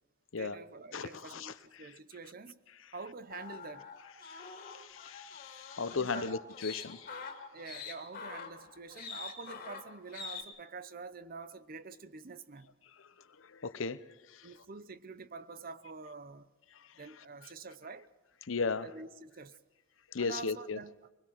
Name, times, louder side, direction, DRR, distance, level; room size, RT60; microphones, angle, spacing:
voice 1, 0.4-2.6 2.9-3.9 5.9-6.4 7.5-12.7 14.4-16.5 17.0-18.1 18.8-19.6 20.2-20.9, right 4 dB, 45° right, 0.7 m, -47 dB
voice 2, 0.9-1.5 4.2-7.2 13.4-14.0 14.3-14.5 18.5-18.9 20.1-20.8, left 4 dB, 75° left, 0.8 m, -36 dB
sound 1, 3.3-10.4, left 5 dB, 45° left, 2.4 m, -45 dB
22.5 x 20.5 x 6.1 m
head